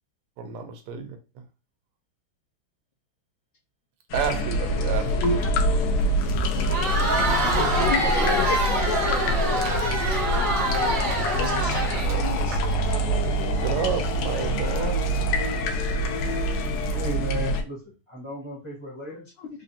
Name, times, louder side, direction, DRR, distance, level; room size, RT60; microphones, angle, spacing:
voice 1, 0.4-1.2 4.1-5.3 13.6-15.0, right 7 dB, 85° right, 7 dB, 1.6 m, -30 dB
sound 1, 4.1-17.6, equal, 90° left, 1.5 m, -25 dB
voice 2, 4.4-5.8 7.1-8.5 10.3-10.5 16.9-19.3, left 2 dB, 30° left, -3 dB, 0.5 m, -35 dB
Crowd, 6.5-12.6, right 2 dB, 65° right, 0.8 m, -26 dB
voice 3, 6.9-8.6 8.8-10.9 11.4-13.7 14.0-14.6 19.4-19.5, left 3 dB, 75° left, 0 dB, 1.0 m, -34 dB
4.4 x 2.5 x 2.7 m, 0.32 s
omnidirectional pair, 2.4 m